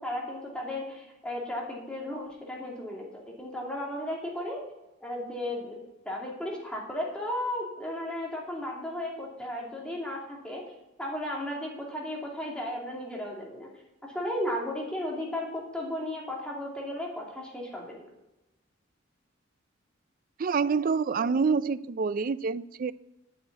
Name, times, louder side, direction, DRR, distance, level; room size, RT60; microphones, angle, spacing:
voice 1, 0.0-4.6 5.0-5.8 6.0-10.2 10.4-10.6 11.0-13.7 14.1-18.0, left 1 dB, 5° left, -2 dB, 2.7 m, -34 dB
voice 2, 20.4-22.9, right 5 dB, 45° right, 17 dB, 0.4 m, -27 dB
9.6 x 6.6 x 8.5 m, 0.96 s
head